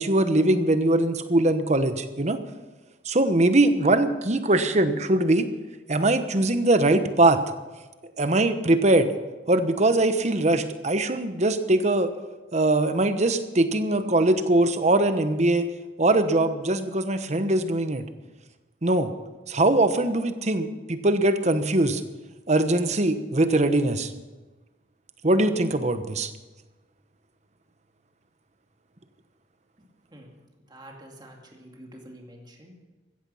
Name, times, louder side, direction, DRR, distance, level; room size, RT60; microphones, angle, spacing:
voice 1, 0.0-2.4 3.0-5.5 5.9-7.4 8.2-9.1 9.5-12.1 12.5-15.7 16.0-18.0 18.8-19.1 19.5-22.0 22.5-24.1 25.2-26.3, right 2 dB, 40° right, 10 dB, 1.1 m, -22 dB
voice 2, 30.7-32.8, right 1 dB, 25° right, 0 dB, 2.4 m, -47 dB
15.0 x 15.0 x 5.6 m, 1.2 s
head